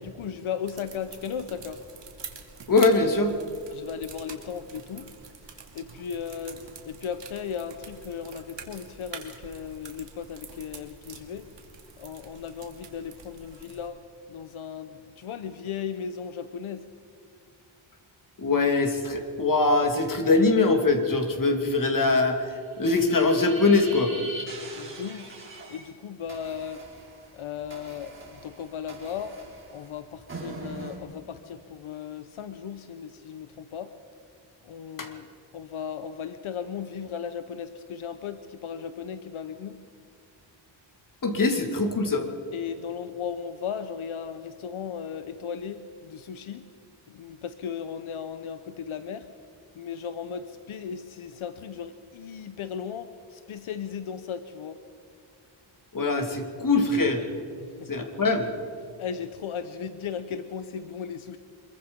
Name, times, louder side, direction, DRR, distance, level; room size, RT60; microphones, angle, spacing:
voice 1, 0.0-1.8 3.7-5.1 5.4-11.5 12.0-14.0 14.3-16.9 24.8-25.3 25.7-26.8 27.3-29.4 29.7-33.9 34.6-39.8 42.5-46.7 47.1-49.3 49.8-54.8 57.6-58.1 59.0-61.4, left 7 dB, 80° left, 10 dB, 1.0 m, -36 dB
sound 1, 0.6-13.9, right 5 dB, 60° right, 2.7 m, -46 dB
voice 2, 2.7-3.4 18.4-24.1 35.0-35.1 41.2-42.3 55.9-57.2 57.9-58.5, left 3 dB, 40° left, 4 dB, 2.6 m, -22 dB
sound 2, 22.7-25.9 26.3-31.0, right 2 dB, 25° right, 4.9 m, -42 dB
25.0 x 22.5 x 5.3 m, 2.4 s
wide cardioid pair, 140°, 48 cm